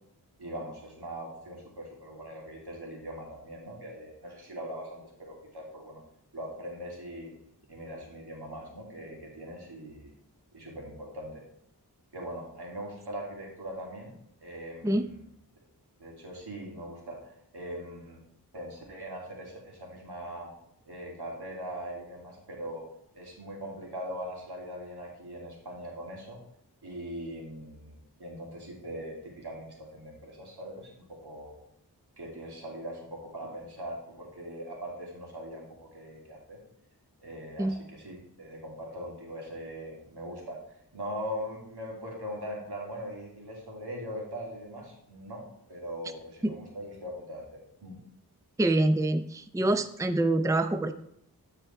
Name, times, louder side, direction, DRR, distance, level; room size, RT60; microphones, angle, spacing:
voice 1, 0.4-6.0 6.3-7.3 7.7-10.1 10.5-11.4 12.1-14.1 14.4-15.0 16.0-18.2 18.5-20.5 20.8-22.9 23.1-26.4 26.8-31.6 32.2-36.6 37.2-45.4 45.7-48.0, equal, 80° right, -2 dB, 3.1 m, -41 dB
voice 2, 48.6-50.9, right 2 dB, 10° right, 10 dB, 0.6 m, -26 dB
13.5 x 4.9 x 4.5 m, 0.74 s
cardioid pair, 40°, 39 cm